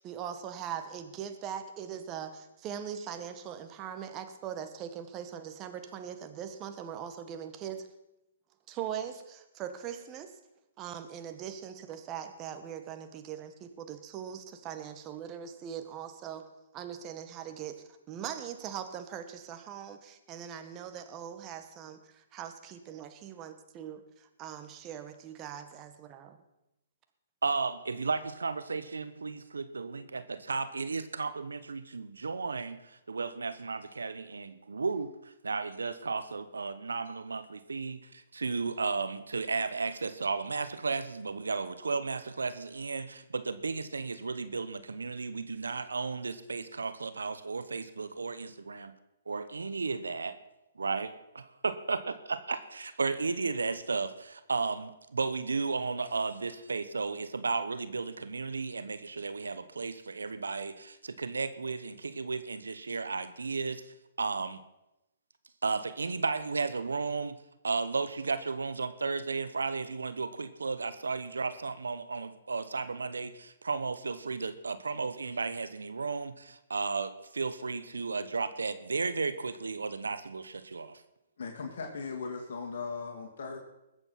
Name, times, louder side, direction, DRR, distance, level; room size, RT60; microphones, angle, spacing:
voice 1, 0.0-7.9 8.7-10.3 10.8-16.5 16.7-26.4, right 9 dB, 30° right, 8 dB, 1.6 m, -41 dB
voice 2, 27.4-48.9 49.3-50.4 50.8-64.6 65.6-67.4 67.6-81.0, right 4 dB, 85° right, 12 dB, 0.9 m, -34 dB
voice 3, 81.4-83.6, left 4 dB, 65° left, 0 dB, 2.4 m, -38 dB
20.5 x 8.1 x 5.8 m, 0.92 s
hypercardioid pair, 130°, 0 cm